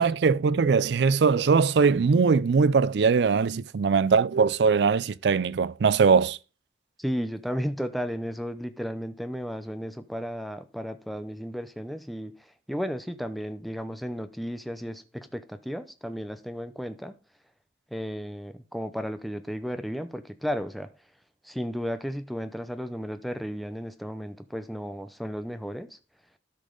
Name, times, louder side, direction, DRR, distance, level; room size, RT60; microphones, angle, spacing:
voice 1, 0.0-6.4, right 5 dB, 65° right, 0.4 m, -21 dB
voice 2, 7.0-17.2 17.9-20.9 21.4-26.0, equal, ahead, 0.6 m, -34 dB
12.5 x 5.3 x 3.8 m
head